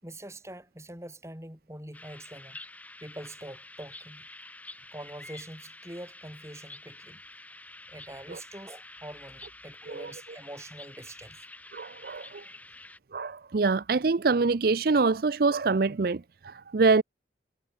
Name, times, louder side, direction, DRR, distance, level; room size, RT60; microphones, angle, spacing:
voice 1, 0.0-2.6 3.0-4.3 4.9-7.2 7.9-11.5, right 1 dB, 15° right, 5.6 m, -44 dB
sound 1, 1.9-13.0, left 2 dB, 10° left, 7.9 m, -48 dB
voice 2, 11.7-12.4 13.1-17.0, right 4 dB, 55° right, 0.5 m, -25 dB
head